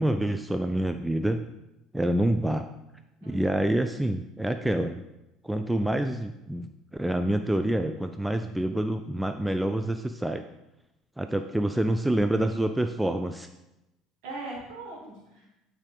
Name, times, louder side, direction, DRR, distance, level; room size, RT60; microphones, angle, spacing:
voice 1, 0.0-1.4 1.9-2.7 3.2-5.0 5.4-6.7 7.0-10.4 11.2-13.5, right 1 dB, 5° right, 7 dB, 0.4 m, -27 dB
voice 2, 3.2-3.7 14.2-15.6, right 2 dB, 60° right, -4 dB, 2.7 m, -40 dB
8.9 x 4.7 x 3.9 m, 0.93 s
figure-of-eight pair, 60°, 0 cm